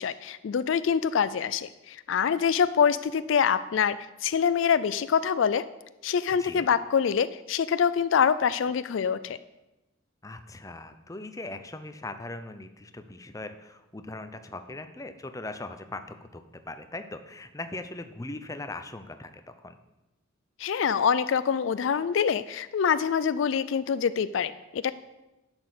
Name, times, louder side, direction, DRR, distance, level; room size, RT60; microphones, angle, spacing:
voice 1, 0.0-4.0 4.2-5.6 6.0-9.4 20.6-24.9, left 7 dB, 70° left, 15 dB, 0.4 m, -25 dB
voice 2, 6.3-6.7 10.2-19.3 19.6-19.8, left 2 dB, 15° left, 8 dB, 0.6 m, -40 dB
11.0 x 6.2 x 6.6 m, 0.99 s
head